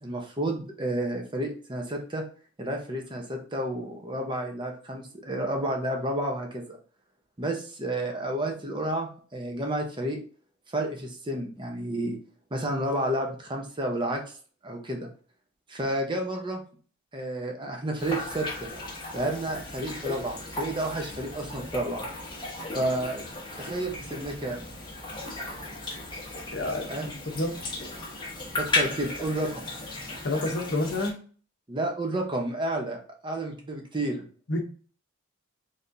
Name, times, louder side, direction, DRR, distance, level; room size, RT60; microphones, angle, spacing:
voice 1, 0.0-2.2 2.6-6.8 7.4-10.2 10.7-12.2 12.5-14.2 14.6-15.1 15.7-16.6 17.1-18.7 19.1-22.0 22.7-23.2 23.6-24.7 26.9-27.1 28.6-29.7 31.7-33.0 33.2-34.2, right 1 dB, 25° right, 0.8 m, -31 dB
sound 1, 18.0-31.1, left 2 dB, 25° left, 1.2 m, -35 dB
voice 2, 26.5-26.9 27.3-27.6 30.2-31.2 34.5-34.6, left 2 dB, 60° left, 0.9 m, -28 dB
4.2 x 3.4 x 2.6 m
head